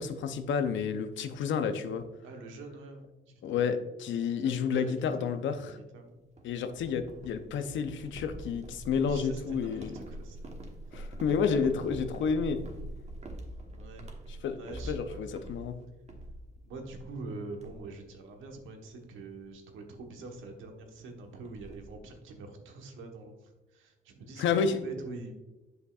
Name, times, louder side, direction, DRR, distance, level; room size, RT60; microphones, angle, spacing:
voice 1, 0.0-2.0 3.4-5.8 6.4-10.0 10.9-12.6 14.4-15.8 24.4-24.8, left 6 dB, 70° left, 9 dB, 0.6 m, -30 dB
voice 2, 2.2-3.8 4.1-6.2 8.9-10.5 13.7-14.1 14.4-15.2 16.6-24.4 24.8-25.3, right 3 dB, 80° right, 4 dB, 1.2 m, -45 dB
sound 1, 6.4-17.2 17.5-18.0 18.3-18.6 19.0-19.2 20.3-20.4 20.7-20.8 21.0-22.0, right 1 dB, 35° right, 1.2 m, -44 dB
7.8 x 5.5 x 2.4 m, 1.1 s
cardioid pair, 90°, 20 cm